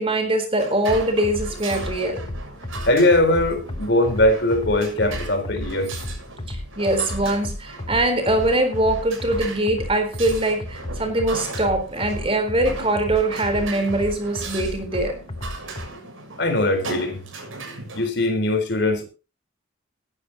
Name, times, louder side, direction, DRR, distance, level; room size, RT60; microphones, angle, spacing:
voice 1, 0.0-2.2 6.5-15.2, right 1 dB, 30° right, 4.0 m, -22 dB
sound 1, 0.6-18.1, right 3 dB, 85° right, 6.8 m, -38 dB
sound 2, 0.9-15.9, left 1 dB, 30° left, 1.0 m, -33 dB
voice 2, 2.8-5.9 16.4-17.2 17.9-19.0, left 1 dB, 55° left, 4.1 m, -20 dB
19.5 x 11.5 x 2.9 m
head